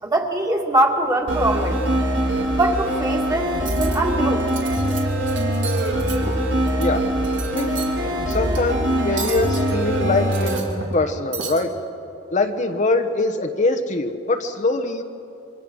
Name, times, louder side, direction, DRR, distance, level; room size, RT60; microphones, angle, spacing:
voice 1, 0.0-1.8 2.5-4.4, right 1 dB, 20° right, 1 dB, 2.4 m, -22 dB
sound 1, 1.3-10.6, right 1 dB, 90° right, 4.6 m, -23 dB
Cutlery silverware, 3.5-4.0 4.4-5.0 5.3-6.9 7.2-7.9 8.3-8.6 9.2-9.7 10.2-11.0 11.3-11.6, right 6 dB, 70° right, 3.1 m, -34 dB
voice 2, 8.0-10.5 10.9-11.7 12.3-15.0, left 2 dB, 40° left, 5 dB, 1.2 m, -23 dB
27.5 x 24.5 x 6.4 m, 2.8 s
head